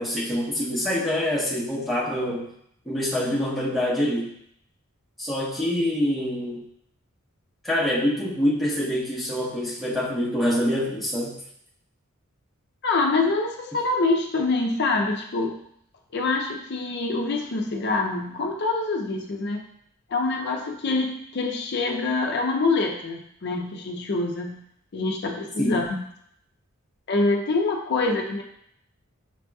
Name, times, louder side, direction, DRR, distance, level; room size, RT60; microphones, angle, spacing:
voice 1, 0.0-2.5 2.9-4.3 5.2-6.6 7.6-11.3 25.6-25.8, equal, ahead, -6 dB, 0.8 m, -25 dB
voice 2, 12.8-15.6 16.1-19.6 20.1-24.6 24.9-26.0 27.1-28.4, left 3 dB, 50° left, 2 dB, 0.5 m, -25 dB
5.9 x 2.8 x 2.3 m, 0.71 s
head